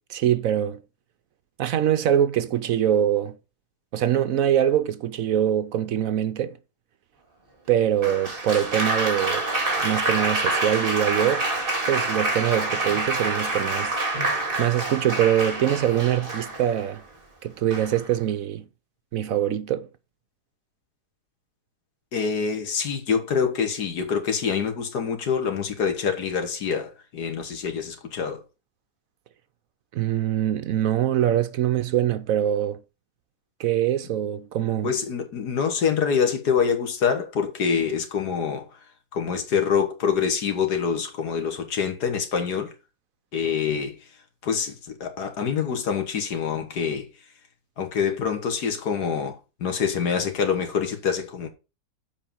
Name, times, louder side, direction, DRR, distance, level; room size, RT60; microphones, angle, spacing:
voice 1, 0.1-0.8 1.6-3.4 3.9-6.6 7.7-9.5 9.8-11.5 11.9-14.0 14.6-17.0 17.4-18.6 19.1-19.9 29.9-32.8 33.6-34.9, right 10 dB, 65° right, 1.0 m, -23 dB
Applause, 8.0-16.9 17.7-18.1, right 2 dB, 35° right, 2.5 m, -27 dB
voice 2, 22.1-28.4 34.8-38.8 39.1-42.7 43.3-44.0 44.4-47.1 47.8-51.5, left 6 dB, 85° left, 1.9 m, -26 dB
7.1 x 5.0 x 5.2 m
omnidirectional pair, 1.7 m